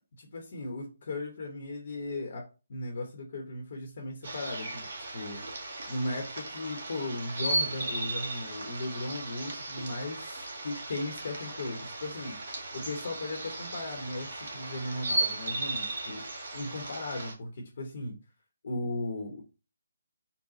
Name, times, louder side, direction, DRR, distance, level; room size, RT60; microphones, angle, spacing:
voice 1, 0.2-4.9 5.1-5.4 5.9-12.4 12.7-18.2 18.6-19.4, left 2 dB, 55° left, 1 dB, 1.0 m, -37 dB
sound 1, 4.2-17.3, right 2 dB, 55° right, 1.8 m, -36 dB
4.0 x 2.2 x 3.9 m, 0.31 s
hypercardioid pair, 160°, 0 cm